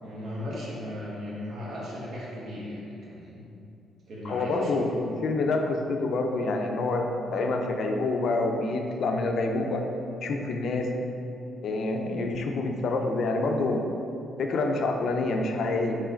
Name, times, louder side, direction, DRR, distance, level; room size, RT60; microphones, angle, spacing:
voice 1, 0.0-3.5 4.1-4.8, left 1 dB, 60° right, -5 dB, 1.2 m, -37 dB
voice 2, 4.2-9.8 10.2-10.9 11.6-13.8 14.4-16.0, left 2 dB, 65° left, 3 dB, 0.4 m, -27 dB
3.7 x 3.1 x 4.3 m, 2.6 s
cardioid pair, 90°, 0 cm